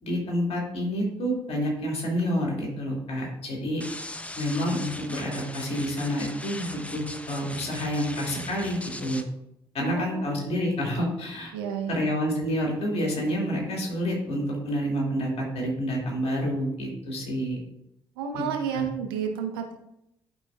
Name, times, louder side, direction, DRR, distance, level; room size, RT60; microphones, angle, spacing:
voice 1, 0.0-3.8 4.4-9.2 9.7-11.5 11.9-17.6 18.3-18.4 18.7-18.8, equal, 55° left, -1 dB, 2.3 m, -28 dB
sound 1, 3.8-9.2, left 1 dB, 10° left, 0.8 m, -39 dB
voice 2, 9.8-10.4 11.5-12.0 18.2-19.8, right 6 dB, 80° right, 4 dB, 0.8 m, -31 dB
12.0 x 4.1 x 2.4 m, 0.82 s
figure-of-eight pair, 45°, 12 cm